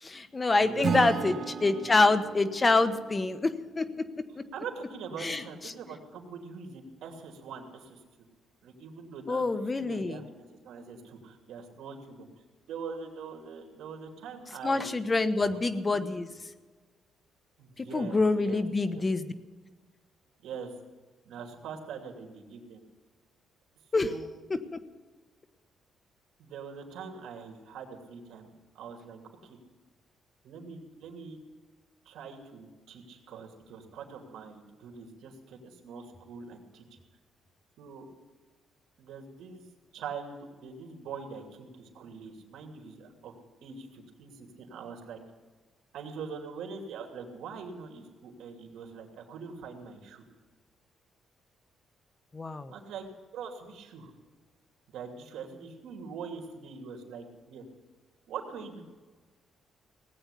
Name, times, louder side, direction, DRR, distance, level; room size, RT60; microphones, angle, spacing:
voice 1, 0.0-3.9 4.4-4.5 5.2-5.7 9.3-10.2 14.6-16.3 17.8-19.3 23.9-24.1 24.5-24.8 52.3-52.7, left 3 dB, 25° left, 10 dB, 1.1 m, -26 dB
voice 2, 0.6-1.8 4.5-8.0 8.6-10.3 10.6-12.3 12.7-15.0 15.4-15.6 15.9-16.2 17.6-18.6 18.9-19.0 20.4-20.7 21.2-22.8 23.9-24.3 26.4-29.6 30.4-31.4 32.0-36.8 37.8-38.1 39.0-39.6 39.9-43.3 43.6-45.2 45.9-50.2 52.7-54.1 54.9-57.6 58.3-58.8, right 5 dB, 80° right, 3 dB, 2.9 m, -43 dB
Acoustic guitar / Strum, 0.8-4.0, right 6 dB, 45° right, 1.0 m, -35 dB
18.0 x 8.9 x 8.4 m, 1.4 s
cardioid pair, 130°, 0 cm